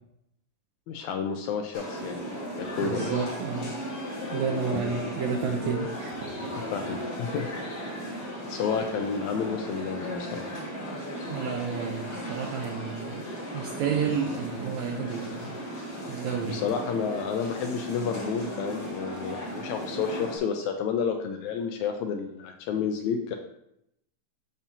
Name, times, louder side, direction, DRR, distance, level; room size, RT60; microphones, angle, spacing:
voice 1, 0.9-2.2 2.5-3.1 6.7-7.5 8.1-8.2 8.5-10.5 16.5-23.4, left 6 dB, 85° left, 4 dB, 1.6 m, -30 dB
sound 1, 1.7-20.4, equal, 40° left, 1.6 m, -36 dB
voice 2, 2.8-3.7 4.3-6.5 11.3-13.3 13.5-15.6 16.1-16.6, right 6 dB, 80° right, 1 dB, 1.6 m, -31 dB
7.2 x 7.1 x 2.7 m, 0.78 s
omnidirectional pair, 4.0 m